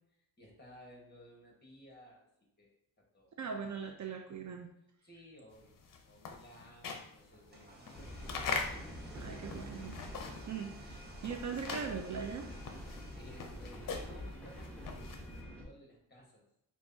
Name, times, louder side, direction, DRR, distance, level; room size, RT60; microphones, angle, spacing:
voice 1, 0.4-2.3 2.6-3.3 5.0-5.8 6.0-9.0 13.2-16.4, equal, 25° left, -1 dB, 1.3 m, -57 dB
voice 2, 3.4-4.7 9.1-10.0 10.4-12.5, right 6 dB, 50° right, 4 dB, 0.5 m, -40 dB
sound 1, 5.6-10.6 10.9-15.4, left 4 dB, 55° left, 0.6 m, -42 dB
sound 2, 7.3-14.1, right 1 dB, 25° right, 0.8 m, -55 dB
sound 3, 7.9-15.6, left 1 dB, 5° left, 0.9 m, -47 dB
6.1 x 2.3 x 2.7 m, 0.79 s
cardioid pair, 100°, 39 cm